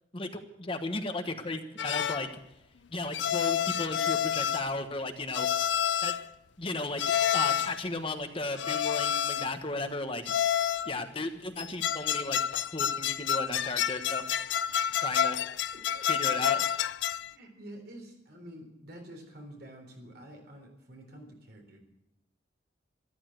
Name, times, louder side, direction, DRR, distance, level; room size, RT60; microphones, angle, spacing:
voice 1, 0.1-2.3 2.9-5.7 6.0-6.2 6.6-10.2 10.8-12.4 12.7-14.2 15.0-15.4 16.1-16.7, left 2 dB, 25° left, 7 dB, 1.2 m, -35 dB
sound 1, 1.8-2.3 3.1-4.8 5.3-6.3 7.0-7.8 8.6-9.6 10.3-11.0 11.6-17.3, left 9 dB, 65° left, 0.5 m, -29 dB
voice 2, 15.7-16.3 17.3-21.8, right 1 dB, 55° right, 3 dB, 3.7 m, -48 dB
13.5 x 13.0 x 7.8 m, 0.88 s
head